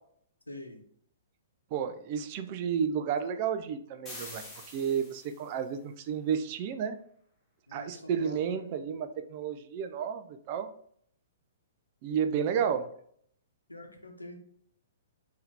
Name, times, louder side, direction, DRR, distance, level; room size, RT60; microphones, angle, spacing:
voice 1, 0.5-0.8 7.7-8.7 12.5-12.7 13.7-14.4, left 1 dB, 85° left, 3 dB, 0.9 m, -45 dB
voice 2, 1.7-7.0 7.7-10.7 12.0-12.8, right 7 dB, 40° right, 8 dB, 0.4 m, -32 dB
sound 1, 4.1-5.6, left 1 dB, 15° left, 1.2 m, -46 dB
5.5 x 2.8 x 3.3 m, 0.64 s
figure-of-eight pair, 115°, 0 cm